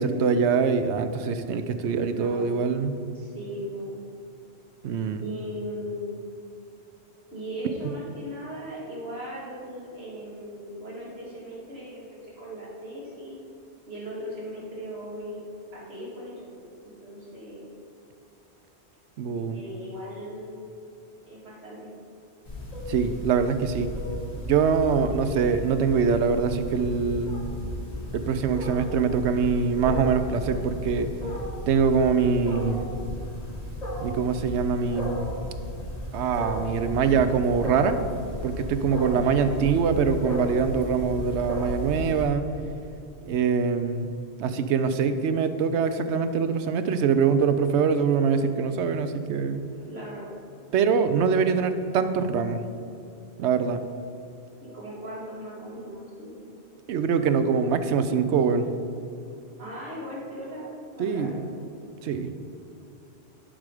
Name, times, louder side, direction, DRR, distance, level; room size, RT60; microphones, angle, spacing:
voice 1, 0.0-3.0 4.8-5.2 19.2-19.6 22.9-23.9 24.4-27.6 28.1-31.1 31.7-32.9 34.0-35.2 36.1-38.0 38.4-42.4 43.2-44.1 44.4-49.6 50.7-52.6 53.4-53.8 56.9-58.7 61.0-61.4 62.0-62.3, right 6 dB, 80° right, 10 dB, 0.9 m, -24 dB
voice 2, 2.1-2.6 3.1-4.0 5.2-6.1 7.3-13.3 13.9-15.5 15.7-17.7 19.5-20.6 21.2-21.9 39.1-39.5 49.9-50.3 54.6-56.3 59.6-61.4, equal, 65° right, -6 dB, 2.5 m, -38 dB
Wild animals, 22.5-42.2, equal, 35° left, 1.8 m, -34 dB
11.5 x 4.8 x 4.9 m, 2.7 s
omnidirectional pair, 1.1 m